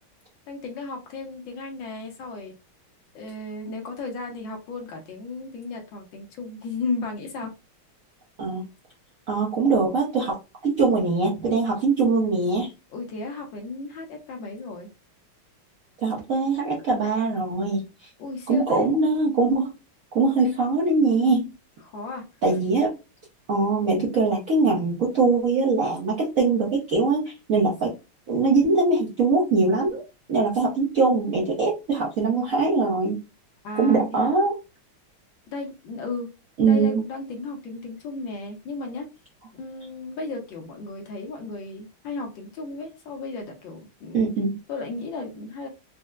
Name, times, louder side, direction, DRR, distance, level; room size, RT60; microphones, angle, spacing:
voice 1, 0.5-2.5 3.1-7.5 12.9-14.9 18.2-18.9 21.8-22.2 33.6-34.3 35.5-36.3 36.6-39.1 39.5-44.3 44.7-45.7, left 3 dB, 70° left, 3 dB, 1.4 m, -34 dB
voice 2, 9.3-10.4 10.6-12.7 16.0-18.1 18.5-19.7 20.1-21.5 22.4-22.9 23.5-27.9 28.3-30.0 30.3-33.2 33.7-34.5 36.6-37.0 44.1-44.6, right 3 dB, 65° right, -4 dB, 0.8 m, -22 dB
4.3 x 2.0 x 2.3 m, 0.27 s
omnidirectional pair, 2.3 m